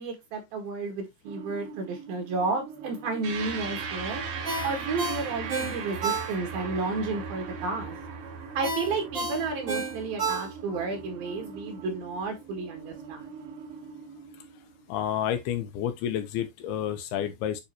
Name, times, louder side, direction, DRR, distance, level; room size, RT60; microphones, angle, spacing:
voice 1, 0.0-4.2 4.6-8.0 8.6-13.2, right 3 dB, 70° right, 3.5 m, -32 dB
sound 1, 1.3-15.3, right 5 dB, 90° right, 3.3 m, -44 dB
sound 2, 3.2-11.9, right 5 dB, 50° right, 2.5 m, -38 dB
Ringtone, 4.4-6.7 7.1-7.2 8.6-10.9 11.3-11.4, right 4 dB, 30° right, 2.8 m, -31 dB
voice 2, 14.9-17.6, left 10 dB, 85° left, 2.8 m, -30 dB
8.8 x 4.1 x 2.9 m
omnidirectional pair, 4.6 m